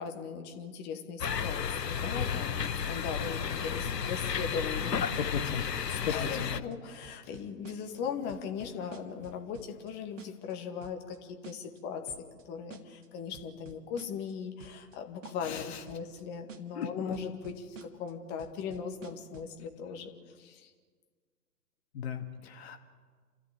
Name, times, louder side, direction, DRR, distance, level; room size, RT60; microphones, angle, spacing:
voice 1, 0.0-5.2 5.5-20.7, left 6 dB, 20° left, 4 dB, 2.0 m, -39 dB
sound 1, 1.2-6.6, left 7 dB, 75° left, 1.1 m, -33 dB
sound 2, 2.6-3.0 3.2-4.2 4.5-4.9 5.1-5.5 5.8-6.1 6.4-6.7 7.0-8.0 8.3-9.9 10.2-10.5 10.8-11.2 11.4-11.8 12.1-12.4 12.7-13.1 13.3-14.3 14.6-15.0 15.2-15.6 15.9-16.2 16.5-16.9 17.1-18.1 18.4-19.6, right 6 dB, 50° right, 2.1 m, -50 dB
voice 2, 5.3-6.5 15.4-15.8 16.8-17.1 21.9-22.8, left 8 dB, 40° left, 6 dB, 1.9 m, -37 dB
29.5 x 13.5 x 8.6 m, 1.6 s
figure-of-eight pair, 130°, 49 cm